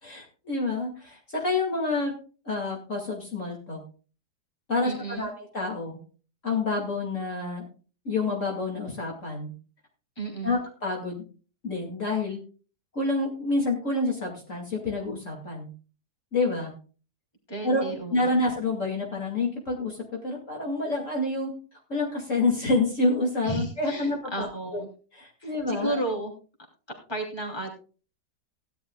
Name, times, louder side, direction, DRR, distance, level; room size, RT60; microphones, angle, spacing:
voice 1, 0.0-2.1 2.4-3.8 4.7-6.0 6.4-7.6 8.0-9.5 10.4-11.2 11.6-12.4 12.9-15.7 16.3-16.7 17.6-17.8 18.1-21.5 21.9-24.5 24.7-24.8 25.1-26.0, left 2 dB, 45° left, -1 dB, 2.9 m, -28 dB
voice 2, 4.8-5.3 10.2-10.6 17.5-18.5 23.4-24.9 25.4-26.3 27.1-27.7, right 2 dB, 15° left, 1 dB, 3.3 m, -33 dB
17.5 x 11.5 x 2.4 m, 0.36 s
omnidirectional pair, 1.9 m